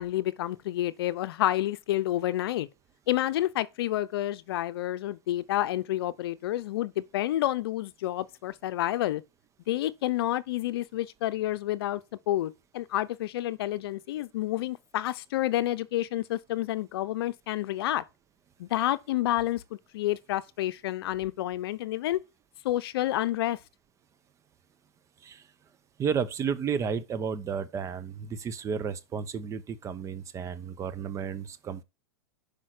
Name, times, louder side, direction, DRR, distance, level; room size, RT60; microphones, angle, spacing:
voice 1, 0.0-2.7 3.1-9.2 9.7-18.0 18.6-19.6 19.9-22.2 22.6-23.6, left 14 dB, 70° left, 0.7 m, -29 dB
voice 2, 26.0-31.8, right 6 dB, 25° right, 0.8 m, -32 dB
5.7 x 5.1 x 6.4 m
hypercardioid pair, 130°, 13 cm